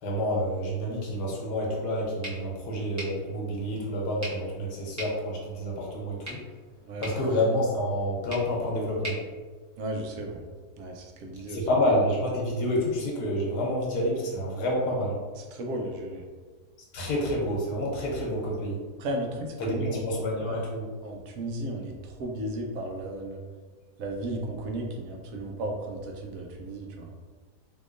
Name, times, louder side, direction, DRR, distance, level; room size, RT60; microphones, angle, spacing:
voice 1, 0.0-6.4 7.0-9.2 11.5-15.2 16.9-18.8 19.6-20.9, equal, 80° left, -3 dB, 1.4 m, -28 dB
sound 1, 2.2-10.3, right 1 dB, 15° right, 0.7 m, -44 dB
voice 2, 9.8-10.4 10.8-11.6 15.4-16.3 19.0-20.2 21.0-23.4 24.0-27.1, right 1 dB, 70° right, 2 dB, 0.9 m, -34 dB
3.6 x 2.9 x 2.5 m, 1.4 s
omnidirectional pair, 1.7 m